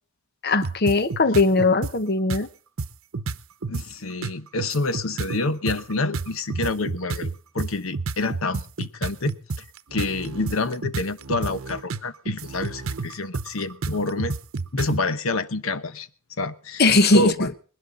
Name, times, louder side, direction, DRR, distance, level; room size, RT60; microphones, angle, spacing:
voice 1, 0.4-2.5 16.8-17.5, left 3 dB, 50° left, 0.9 m, -19 dB
sound 1, 0.6-1.9 2.3-2.4 2.8-3.9 4.2-15.0, right 3 dB, 85° right, 0.8 m, -30 dB
voice 2, 3.7-9.3 9.9-14.4 14.8-16.1 16.4-17.5, left 2 dB, 85° left, 1.0 m, -28 dB
21.5 x 11.5 x 3.8 m
head